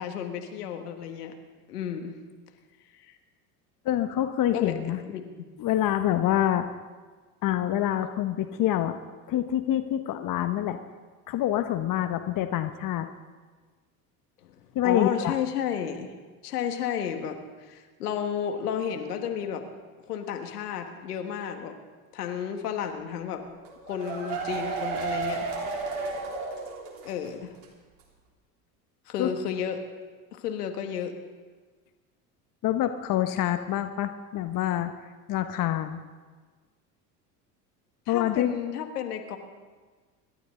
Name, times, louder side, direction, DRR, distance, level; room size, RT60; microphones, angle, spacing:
voice 1, 0.0-1.3 1.7-2.1 3.0-3.2 4.5-4.8 5.1-5.5 14.4-14.5 14.8-16.1 16.4-19.6 20.1-21.7 22.1-23.4 23.9-25.5 27.0-27.5 29.1-29.8 30.3-31.2 38.1-39.4, left 8 dB, 85° left, 6 dB, 1.6 m, -32 dB
voice 2, 3.8-5.0 5.6-6.7 7.4-9.0 9.3-10.8 11.3-13.1 14.7-15.3 29.2-29.3 32.6-34.9 35.3-36.0 38.1-38.6, left 12 dB, 45° left, 9 dB, 1.0 m, -26 dB
Aplauso com Gritos, 23.6-27.3 27.6-27.7 28.0-28.1, right 4 dB, 60° right, 3.5 m, -32 dB
25.5 x 12.5 x 3.8 m, 1.4 s
hypercardioid pair, 75°, 45 cm